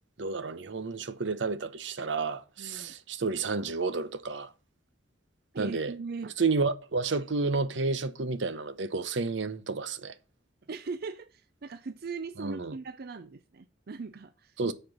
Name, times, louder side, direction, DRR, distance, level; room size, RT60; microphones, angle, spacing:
voice 1, 0.2-4.5 5.6-5.9 6.4-10.1 12.4-12.8 14.6-14.7, right 4 dB, 85° right, 0.8 m, -31 dB
voice 2, 2.6-3.0 5.5-6.3 10.7-14.6, right 4 dB, 55° right, 0.5 m, -39 dB
7.8 x 4.4 x 7.1 m
head